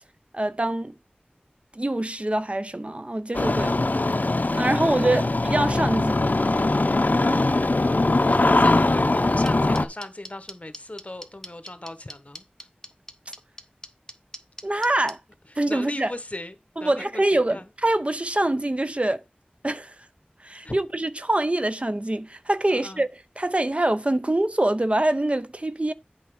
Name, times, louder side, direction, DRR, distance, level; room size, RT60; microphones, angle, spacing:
voice 1, 0.3-0.9 1.8-3.8 4.5-6.1 14.6-15.2 15.6-16.1 16.8-19.2 19.6-20.0 20.4-25.9, right 1 dB, 40° right, 0.5 m, -24 dB
Engine starting, 3.3-9.9, left 2 dB, 55° left, 0.5 m, -21 dB
voice 2, 4.8-5.3 5.9-6.1 8.3-12.4 15.5-16.5 16.8-17.7 20.6-20.8 22.7-23.0, left 1 dB, 40° left, 1.1 m, -38 dB
sound 1, 9.5-15.1, equal, 15° left, 1.0 m, -39 dB
8.3 x 4.4 x 4.8 m
wide cardioid pair, 40°, 3 cm